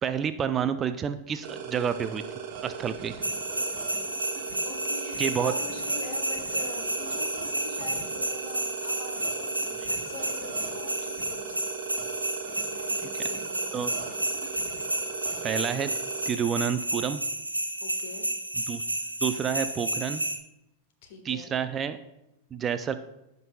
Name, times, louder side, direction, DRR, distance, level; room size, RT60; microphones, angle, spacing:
voice 1, 0.0-2.2 2.6-3.1 5.2-5.5 9.8-9.9 13.7-13.9 15.4-15.9 16.2-17.2 18.7-18.8 19.2-20.2 21.2-22.0 22.5-22.9, right 8 dB, 25° right, 11 dB, 0.4 m, -29 dB
sound 1, 1.4-16.3, right 6 dB, 45° right, 1.5 m, -39 dB
sound 2, 3.2-20.4, right 1 dB, 85° right, 0.7 m, -31 dB
voice 2, 4.6-11.7 12.7-14.2 17.8-18.3 21.0-21.5, left 4 dB, 50° left, 4 dB, 1.5 m, -44 dB
16.0 x 5.4 x 2.3 m, 0.89 s
figure-of-eight pair, 90°, 0 cm